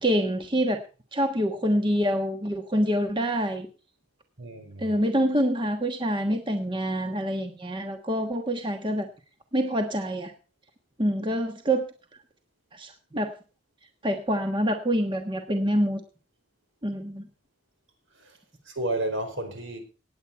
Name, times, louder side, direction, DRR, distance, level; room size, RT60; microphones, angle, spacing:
voice 1, 0.0-0.8 1.1-3.7 4.8-9.1 9.5-10.3 11.0-11.9 12.7-13.3 14.0-16.0 16.8-17.2, equal, 25° right, 1.3 m, -26 dB
voice 2, 4.4-4.9 18.2-18.3 18.7-19.8, right 1 dB, 70° right, 4.7 m, -31 dB
18.5 x 8.6 x 4.5 m
head